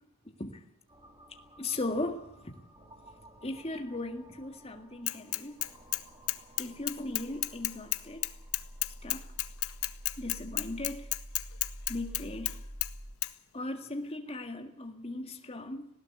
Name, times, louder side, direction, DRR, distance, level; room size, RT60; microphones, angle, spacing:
sound 1, 0.9-13.2, equal, 20° right, 3.4 m, -49 dB
voice 1, 1.6-2.6 3.4-5.7 6.6-8.3 9.0-9.3 10.2-11.1 11.9-12.6 13.5-15.9, left 2 dB, 25° left, 2.0 m, -37 dB
Bicycle / Mechanisms, 5.1-6.0 6.3-12.5 12.8-12.9 13.2-13.3, left 17 dB, 75° left, 1.0 m, -31 dB
19.5 x 17.0 x 8.2 m
head